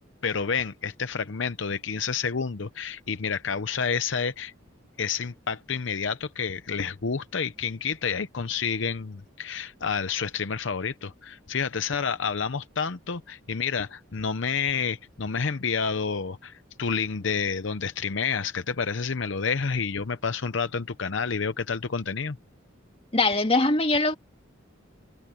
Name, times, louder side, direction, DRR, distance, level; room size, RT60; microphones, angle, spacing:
voice 1, 0.2-4.5 5.0-22.4, left 5 dB, 65° left, 0.7 m, -29 dB
voice 2, 23.1-24.1, left 2 dB, 30° left, 2.2 m, -22 dB
head